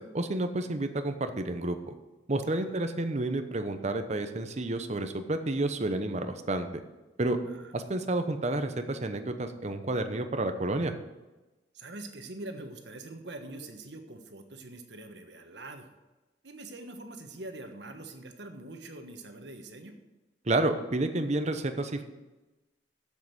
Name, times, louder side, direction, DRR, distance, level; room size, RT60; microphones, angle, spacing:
voice 1, 0.0-1.8 2.3-6.7 7.2-7.4 7.7-10.9 20.5-22.0, right 2 dB, 40° right, 8 dB, 0.9 m, -30 dB
voice 2, 2.5-2.9 7.4-7.7 11.7-15.9 16.4-19.9, right 2 dB, 80° right, 5 dB, 1.3 m, -44 dB
7.8 x 7.6 x 8.0 m, 1.1 s
head